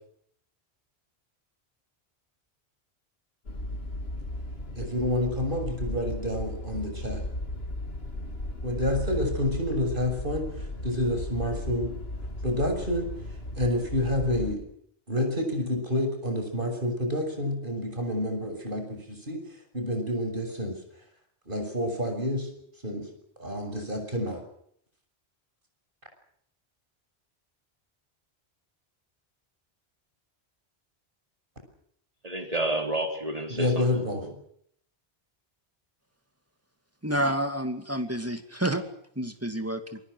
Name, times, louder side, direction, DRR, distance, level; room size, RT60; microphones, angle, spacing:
sound 1, 3.5-14.5, left 1 dB, 70° left, 2.9 m, -35 dB
voice 1, 4.7-7.2 8.6-11.9 12.4-13.1 13.6-14.6 15.1-19.4 19.7-20.8 21.5-22.5 22.8-23.1 23.4-24.4 33.5-34.3, left 1 dB, 55° right, 5 dB, 6.7 m, -28 dB
voice 2, 32.2-34.3, right 1 dB, 35° right, 4 dB, 4.0 m, -30 dB
voice 3, 37.0-38.8 39.2-40.0, right 1 dB, 15° right, 7 dB, 2.4 m, -29 dB
27.5 x 23.5 x 6.4 m, 0.67 s
omnidirectional pair, 1.1 m